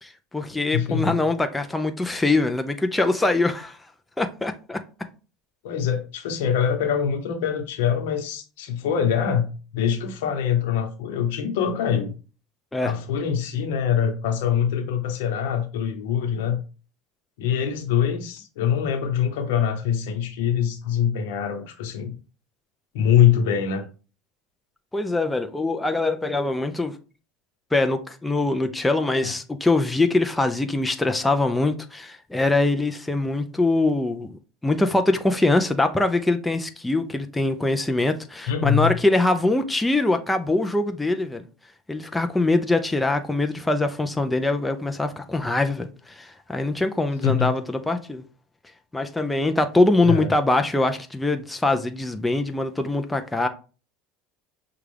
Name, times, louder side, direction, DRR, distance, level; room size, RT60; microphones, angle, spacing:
voice 1, 0.0-3.8 4.2-4.8 12.7-12.9 24.9-27.0 27.7-41.5 41.9-48.2 48.9-53.5, left 2 dB, 10° left, 0.5 m, -23 dB
voice 2, 0.7-1.2 5.6-12.1 12.8-16.6 17.4-22.1 22.9-23.8 29.2-29.3 38.5-38.9 47.2-47.5 50.1-50.3, left 8 dB, 85° left, 0.9 m, -24 dB
6.1 x 2.4 x 3.3 m
supercardioid pair, 110°, 0 cm